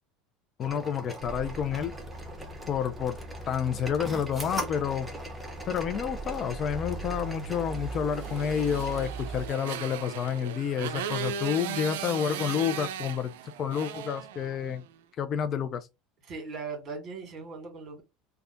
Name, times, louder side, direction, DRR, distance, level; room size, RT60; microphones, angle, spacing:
voice 1, 0.6-1.9 2.7-3.2 3.5-5.1 5.7-13.3 13.6-14.9 15.2-15.9, left 8 dB, 45° left, 0.5 m, -29 dB
sound 1, 0.6-9.1, right 1 dB, 10° right, 1.0 m, -41 dB
sound 2, 1.2-9.5, right 3 dB, 25° right, 1.4 m, -40 dB
Motorcycle, 8.2-14.9, right 9 dB, 85° right, 0.4 m, -37 dB
voice 2, 16.3-18.0, right 4 dB, 45° right, 1.9 m, -39 dB
3.4 x 2.3 x 3.8 m
supercardioid pair, 100°, 0 cm